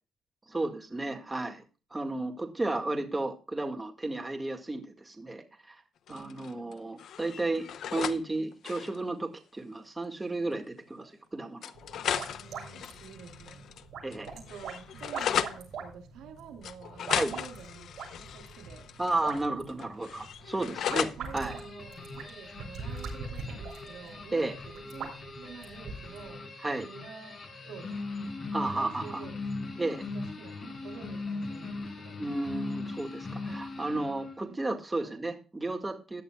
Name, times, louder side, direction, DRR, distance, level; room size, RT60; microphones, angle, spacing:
voice 1, 0.5-1.6 1.9-5.8 6.1-11.7 14.0-14.3 17.1-17.3 19.0-21.6 24.3-24.5 26.6-26.9 28.5-29.2 29.8-30.1 32.2-36.2, right 2 dB, 15° right, 4 dB, 1.9 m, -33 dB
sound 1, 6.1-6.7 7.0-8.2 8.5-9.0 10.1-10.2 10.5-10.6 11.6-13.8 14.1-15.6 16.6-19.4 19.7-21.2, left 9 dB, 65° left, 0.8 m, -35 dB
voice 2, 6.1-6.8 11.0-11.1 12.2-13.7 14.3-18.9 20.6-26.5 26.8-27.4 27.6-28.1 28.6-29.4 30.1-32.2 33.5-33.6 34.5-35.2 36.1-36.2, right 6 dB, 90° right, 4 dB, 3.1 m, -49 dB
sound 2, 11.7-26.3, right 5 dB, 60° right, 6.9 m, -43 dB
sound 3, 21.4-34.5, left 3 dB, 40° left, 6.5 m, -40 dB
17.0 x 11.0 x 2.3 m, 0.33 s
cardioid pair, 120°, 0 cm